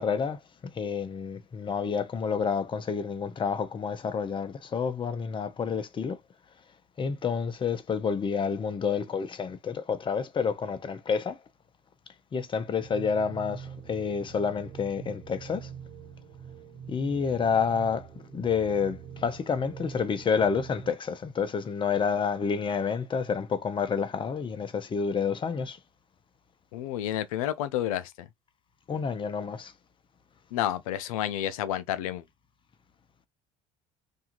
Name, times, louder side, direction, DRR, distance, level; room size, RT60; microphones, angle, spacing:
voice 1, 0.0-6.2 7.0-11.4 12.3-15.7 16.9-18.1 18.3-25.8 28.9-29.7, left 6 dB, 30° left, 0.6 m, -29 dB
sound 1, 12.8-20.9, right 7 dB, 45° right, 1.4 m, -44 dB
voice 2, 26.7-28.3 30.5-32.2, left 12 dB, 85° left, 0.5 m, -30 dB
2.7 x 2.3 x 2.9 m
supercardioid pair, 80°, 17 cm